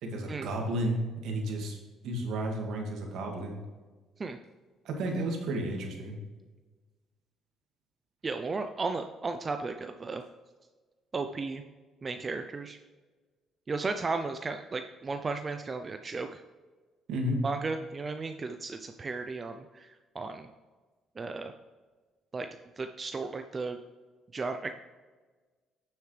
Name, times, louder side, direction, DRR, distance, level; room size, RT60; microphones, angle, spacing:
voice 1, 0.0-1.8 2.0-3.6 4.8-6.2 17.1-17.4, right 1 dB, 75° right, 1 dB, 2.1 m, -32 dB
voice 2, 8.2-10.2 11.1-11.6 12.0-12.8 13.7-16.4 17.4-20.5 21.2-21.5 22.3-22.5 22.8-23.8 24.3-24.7, right 3 dB, 30° right, 7 dB, 0.5 m, -34 dB
9.3 x 7.2 x 3.3 m, 1.3 s
cardioid pair, 105°, 0 cm